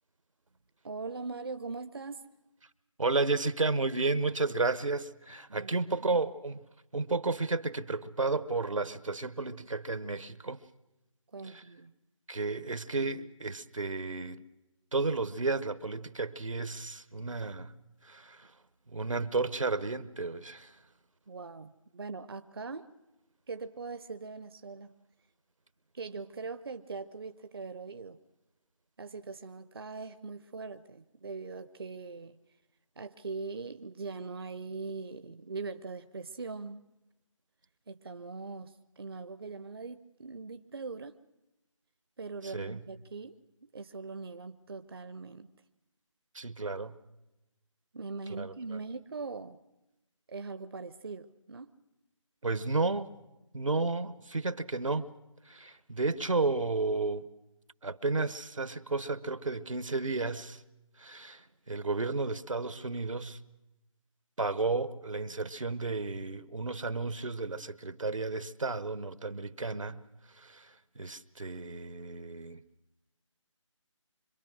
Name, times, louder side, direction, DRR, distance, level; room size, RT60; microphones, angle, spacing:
voice 1, 0.8-2.2 5.5-5.9 11.3-12.0 21.3-22.9 23.5-24.9 25.9-28.2 29.0-32.4 33.0-36.8 37.9-41.2 42.2-43.4 43.7-45.5 47.9-49.6 50.3-51.7, right 4 dB, 50° right, 0.7 m, -41 dB
voice 2, 3.0-6.6 6.9-10.6 11.5-11.6 12.3-14.4 14.9-17.7 18.0-18.5 18.9-20.7 42.5-42.8 46.3-47.0 48.4-48.5 52.4-53.1 53.5-55.1 55.5-57.3 57.8-60.6 61.0-63.4 64.4-70.0 70.4-70.7 71.0-72.6, right 3 dB, 80° right, 1.3 m, -32 dB
26.0 x 22.5 x 6.3 m
figure-of-eight pair, 160°, 17 cm